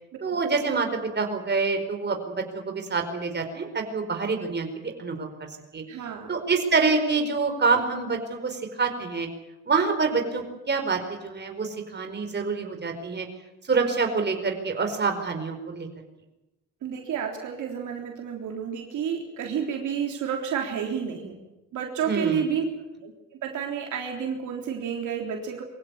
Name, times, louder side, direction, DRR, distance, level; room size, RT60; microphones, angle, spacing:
voice 1, 0.2-0.9 1.1-5.8 6.3-9.3 9.7-13.3 13.6-15.9 22.1-22.4, right 4 dB, 35° right, 5 dB, 4.8 m, -26 dB
voice 2, 5.9-6.3 16.8-21.4 21.7-22.7 23.0-23.1 23.4-25.6, right 7 dB, 75° right, 2 dB, 3.6 m, -30 dB
24.0 x 16.0 x 9.6 m, 1.0 s
cardioid pair, 90°, 30 cm